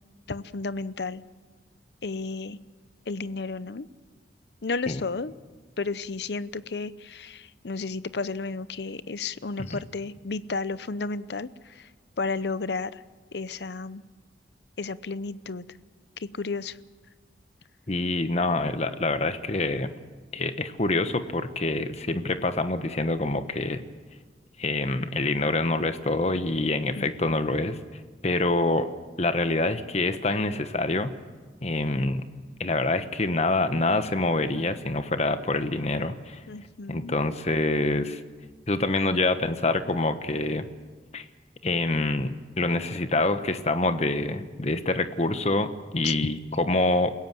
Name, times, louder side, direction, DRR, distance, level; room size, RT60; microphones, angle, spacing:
voice 1, 0.3-1.2 2.0-2.6 3.1-3.9 4.6-5.3 5.8-11.9 12.2-13.0 13.3-14.0 14.8-15.6 16.2-16.8 26.9-27.4 36.5-37.2 46.0-46.2, left 4 dB, 65° left, 16 dB, 0.7 m, -32 dB
voice 2, 17.9-19.9 20.3-23.8 24.6-27.8 28.2-28.9 29.2-31.1 31.6-32.2 32.6-36.4 36.9-38.2 38.7-40.7 41.1-41.2 41.6-47.1, left 2 dB, 35° left, 10 dB, 1.2 m, -26 dB
28.5 x 16.5 x 7.6 m, 1.4 s
head